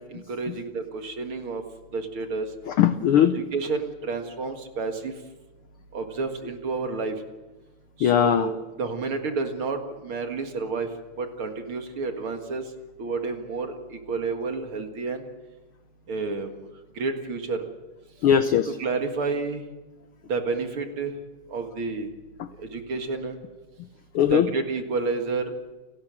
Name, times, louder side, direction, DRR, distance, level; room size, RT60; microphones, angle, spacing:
voice 1, 0.0-1.6 1.9-2.5 3.2-5.1 5.9-7.1 8.0-10.9 11.2-12.6 13.0-15.2 16.1-16.5 17.0-17.6 18.8-19.6 20.3-21.1 21.5-22.1 22.6-23.4 24.3-25.5, right 4 dB, 50° right, 5 dB, 2.4 m, -30 dB
voice 2, 2.7-3.4 8.0-8.5 18.2-18.7 24.1-24.5, left 9 dB, 80° left, 10 dB, 1.2 m, -19 dB
29.5 x 12.5 x 7.6 m, 1.1 s
omnidirectional pair, 3.4 m